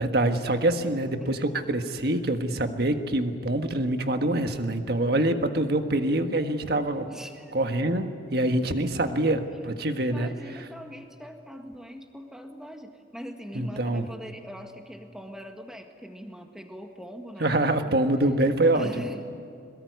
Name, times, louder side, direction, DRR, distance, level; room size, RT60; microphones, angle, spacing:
voice 1, 0.0-7.1 7.5-10.3 13.6-14.1 17.4-19.0, right 1 dB, 55° right, 6 dB, 1.6 m, -25 dB
voice 2, 7.0-7.5 10.0-17.9 18.7-19.2, equal, 5° right, 4 dB, 1.8 m, -41 dB
22.5 x 20.5 x 9.6 m, 2.4 s
head